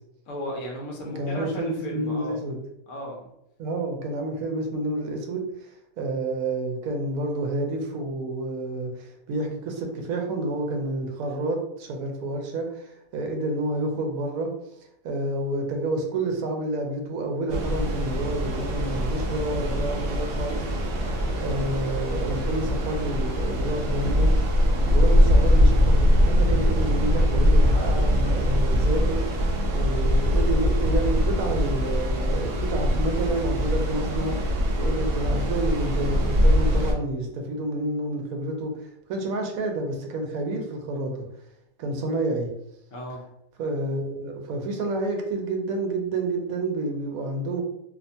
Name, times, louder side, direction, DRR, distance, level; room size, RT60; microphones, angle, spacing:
voice 1, 0.3-2.4 2.9-3.3 24.7-25.0 42.9-43.2, equal, 65° left, -1 dB, 1.0 m, -35 dB
voice 2, 1.2-2.6 3.6-14.5 15.0-21.1 21.4-24.5 24.9-41.2 41.8-42.5 43.6-47.6, right 2 dB, 85° right, 2 dB, 1.1 m, -29 dB
sound 1, 17.5-36.9, equal, 65° right, 0.6 m, -22 dB
2.8 x 2.1 x 2.6 m, 0.78 s
omnidirectional pair, 1.5 m